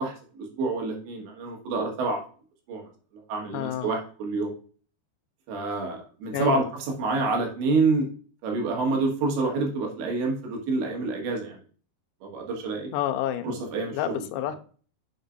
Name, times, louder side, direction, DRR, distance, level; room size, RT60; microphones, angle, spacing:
voice 1, 0.0-2.2 2.7-2.8 3.3-4.5 5.5-8.1 8.4-11.6 12.2-12.9 13.4-14.2, right 3 dB, 80° right, 1 dB, 3.8 m, -27 dB
voice 2, 3.5-4.0 6.3-6.7 12.9-13.6 13.9-14.6, left 11 dB, 90° left, 9 dB, 2.9 m, -29 dB
7.4 x 6.7 x 2.5 m, 0.41 s
omnidirectional pair, 5.1 m